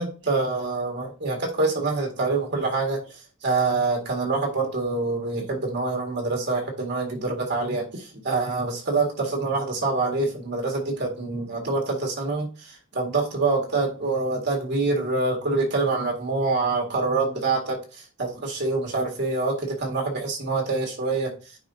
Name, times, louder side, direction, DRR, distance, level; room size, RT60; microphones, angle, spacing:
voice 1, 0.0-21.3, right 3 dB, 60° right, 1 dB, 1.9 m, -26 dB
9.5 x 4.3 x 2.7 m, 0.35 s
head